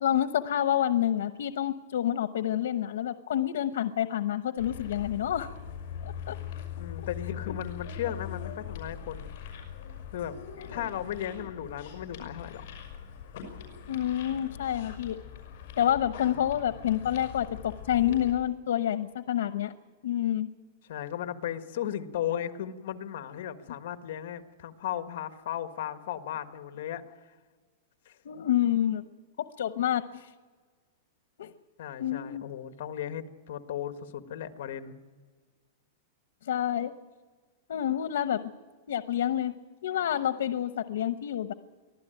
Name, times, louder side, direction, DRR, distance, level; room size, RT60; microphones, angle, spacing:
voice 1, 0.0-5.5 6.0-6.4 10.6-10.7 13.9-15.2 15.8-19.7 20.0-20.5 28.2-29.0 29.4-30.3 31.4-31.5 32.0-32.4 36.4-36.9 37.7-38.4 38.9-39.5 39.8-41.5, left 11 dB, 85° left, 12 dB, 0.9 m, -28 dB
sound 1, 4.6-18.3, left 8 dB, 35° left, 5.9 m, -42 dB
voice 2, 6.8-9.3 10.1-10.3 10.7-12.6 20.9-27.0 28.0-28.2 31.8-35.0, left 10 dB, 55° left, 9 dB, 1.5 m, -36 dB
24.0 x 15.5 x 9.1 m, 1.4 s
supercardioid pair, 180°, 0 cm